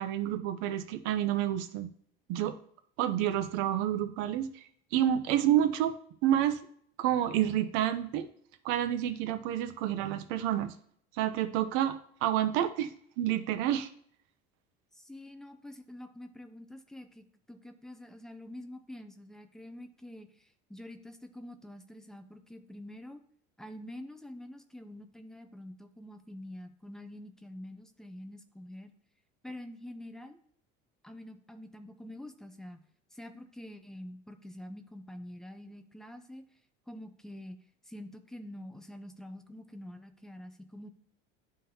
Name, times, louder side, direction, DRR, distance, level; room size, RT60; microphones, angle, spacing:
voice 1, 0.0-1.9 2.3-2.5 3.0-5.9 6.2-6.6 7.0-8.3 8.6-10.7 11.1-12.0 12.2-13.9, right 11 dB, 70° right, 10 dB, 0.7 m, -29 dB
voice 2, 14.9-23.2 23.6-28.9 29.4-30.4 31.0-32.8 33.1-36.4 36.9-37.6 37.8-40.9, left 1 dB, ahead, 7 dB, 0.4 m, -46 dB
11.0 x 3.8 x 2.8 m, 0.64 s
cardioid pair, 160°, 21 cm